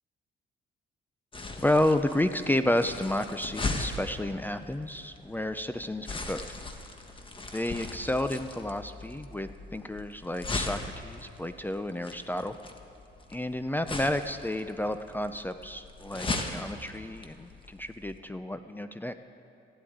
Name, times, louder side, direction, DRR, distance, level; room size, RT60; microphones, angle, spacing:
sound 1, 1.3-18.2, left 2 dB, 25° left, 1.3 m, -39 dB
voice 1, 1.6-6.4 7.5-12.6 13.3-19.1, left 1 dB, 10° left, 10 dB, 0.5 m, -31 dB
15.0 x 8.4 x 9.3 m, 2.7 s
cardioid pair, 90°, 20 cm